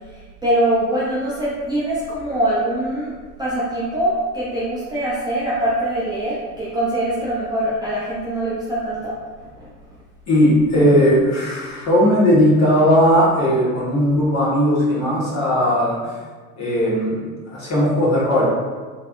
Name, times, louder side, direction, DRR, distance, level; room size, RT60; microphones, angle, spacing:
voice 1, 0.1-3.1 3.4-9.1 9.6-9.7, right 1 dB, 10° right, -9 dB, 0.6 m, -23 dB
voice 2, 10.3-16.0 16.6-18.5, equal, 35° left, -6 dB, 1.5 m, -17 dB
3.3 x 3.3 x 2.6 m, 1.4 s
hypercardioid pair, 100°, 48 cm